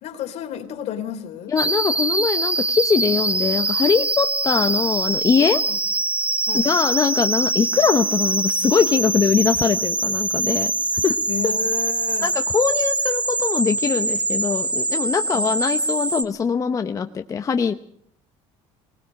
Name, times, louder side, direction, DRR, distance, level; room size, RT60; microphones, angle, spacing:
voice 1, 0.0-1.5 5.7-5.8 6.5-6.7 11.3-12.3, left 10 dB, 55° left, 6 dB, 3.3 m, -31 dB
voice 2, 1.5-5.6 6.5-10.7 11.0-11.2 12.2-17.7, left 6 dB, 25° left, 7 dB, 0.8 m, -22 dB
sound 1, 1.6-16.2, right 2 dB, 10° right, 1.0 m, -23 dB
22.0 x 19.5 x 6.4 m, 0.64 s
cardioid pair, 140°, 14 cm